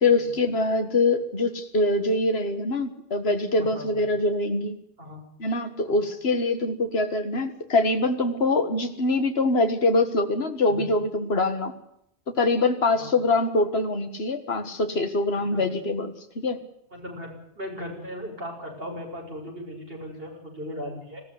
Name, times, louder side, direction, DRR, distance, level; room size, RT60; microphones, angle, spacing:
voice 1, 0.0-4.8 5.4-11.7 12.3-16.6, left 2 dB, 65° left, 7 dB, 2.1 m, -24 dB
voice 2, 3.6-4.1 5.0-5.2 5.9-6.0 10.7-10.9 13.0-13.1 15.5-15.7 17.0-17.3 17.5-21.2, equal, 55° right, 1 dB, 6.8 m, -37 dB
20.5 x 15.5 x 9.7 m, 0.76 s
omnidirectional pair, 1.1 m